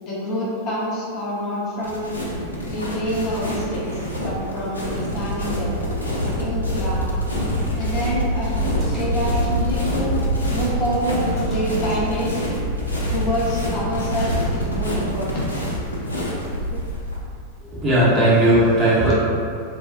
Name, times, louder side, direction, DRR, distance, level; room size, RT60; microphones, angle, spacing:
voice 1, 0.0-2.1 2.6-5.8 6.2-7.0 7.8-8.6 8.8-10.2 10.5-12.4 12.9-15.5 16.0-16.2 16.5-16.8, equal, 35° left, -7 dB, 0.6 m, -27 dB
sound 1, 1.8-17.2, equal, 80° left, 0.4 m, -25 dB
Splash splatter, 8.8-9.8 11.4-12.4 14.1-14.9, equal, 5° left, 0.9 m, -39 dB
voice 2, 17.6-19.1, right 1 dB, 25° right, -8 dB, 0.8 m, -17 dB
2.3 x 2.2 x 2.4 m, 2.3 s
figure-of-eight pair, 90°, 0 cm